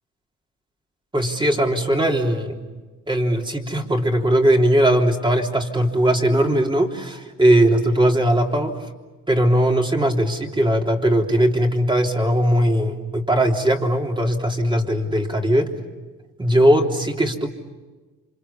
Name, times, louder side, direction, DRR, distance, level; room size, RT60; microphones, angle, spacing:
voice 1, 1.1-2.6 3.1-8.9 9.3-15.7 16.4-17.5, right 1 dB, 15° right, 2 dB, 3.4 m, -19 dB
28.5 x 26.0 x 7.2 m, 1.2 s
cardioid pair, 90°, 30 cm